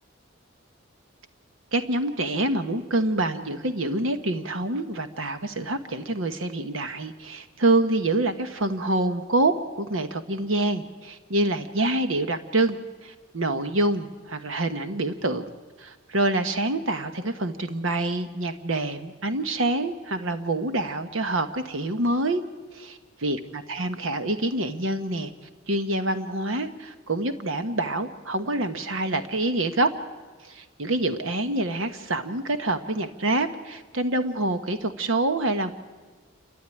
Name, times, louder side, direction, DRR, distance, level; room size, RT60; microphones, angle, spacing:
voice 1, 1.7-15.4 15.8-22.4 22.7-25.3 25.7-29.9 30.4-35.7, right 2 dB, 80° right, 9 dB, 1.2 m, -26 dB
28.0 x 13.0 x 9.9 m, 1.4 s
head